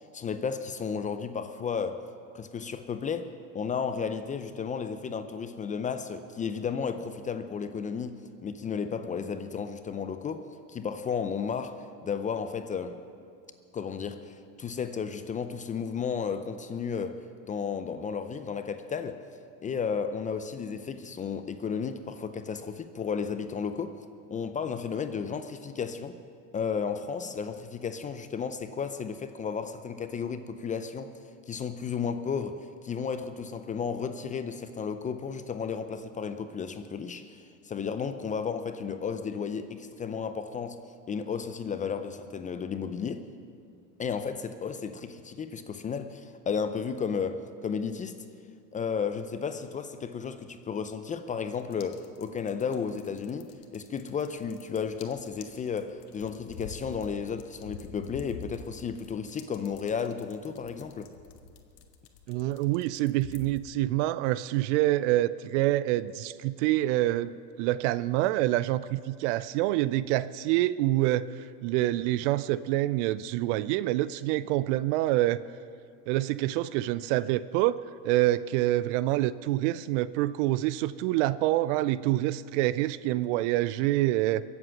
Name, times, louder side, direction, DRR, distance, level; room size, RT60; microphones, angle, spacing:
voice 1, 0.1-2.1 2.3-13.0 13.7-19.3 19.6-24.0 24.3-26.2 26.5-31.2 31.5-40.8 41.1-43.3 44.0-48.2 48.7-61.1, left 6 dB, 15° left, 0.5 m, -33 dB
sound 1, 51.6-63.6, left 5 dB, 80° left, 1.4 m, -47 dB
voice 2, 62.3-75.4 76.1-77.8 78.0-84.4, right 15 dB, 50° right, 0.5 m, -26 dB
22.5 x 8.1 x 5.8 m
hypercardioid pair, 100°, 48 cm